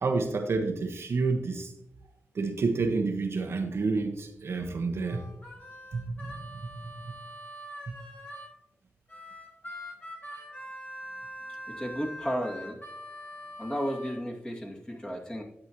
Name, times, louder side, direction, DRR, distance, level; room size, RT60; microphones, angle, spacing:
voice 1, 0.0-1.7 2.3-5.2 5.9-6.3, right 3 dB, 65° right, 4 dB, 1.1 m, -29 dB
Harmonica, 5.1-8.5 9.1-14.2, equal, 40° left, 4.2 m, -43 dB
voice 2, 11.7-12.8 13.6-15.4, equal, 15° left, -2 dB, 2.5 m, -33 dB
11.5 x 8.3 x 3.1 m, 0.82 s
cardioid pair, 60°, 5 cm